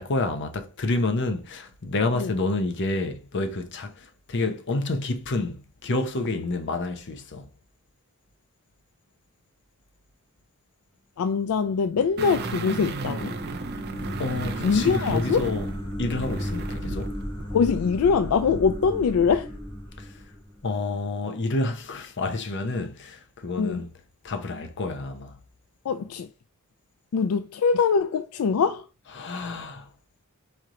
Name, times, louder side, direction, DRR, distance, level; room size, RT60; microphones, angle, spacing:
voice 1, 0.0-7.5 14.2-15.7 16.0-17.1 20.6-23.9 24.2-25.4 29.2-29.9, left 2 dB, 60° left, 0.8 m, -29 dB
voice 2, 11.2-13.3 14.6-15.5 17.5-19.5 23.6-23.8 25.9-26.3 27.1-28.9, left 5 dB, 85° left, 0.4 m, -23 dB
sound 1, 11.7-20.9, equal, 25° left, 2.3 m, -35 dB
sound 2, 12.2-17.1 17.4-17.5, right 3 dB, 50° right, 0.6 m, -35 dB
4.4 x 3.3 x 3.7 m
head